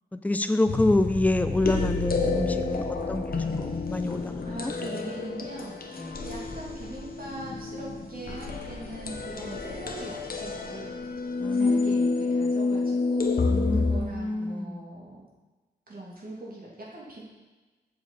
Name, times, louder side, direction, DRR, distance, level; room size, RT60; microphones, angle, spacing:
voice 1, 0.1-4.7 6.0-6.2 11.4-12.0 13.5-14.8, left 2 dB, 10° left, 9 dB, 0.5 m, -28 dB
sound 1, 0.7-14.0, left 3 dB, 60° left, 0.9 m, -29 dB
voice 2, 4.4-10.9 11.5-15.2 15.9-17.2, right 1 dB, 55° right, -5 dB, 2.6 m, -41 dB
7.1 x 6.4 x 4.2 m, 1.2 s
cardioid pair, 55°, 18 cm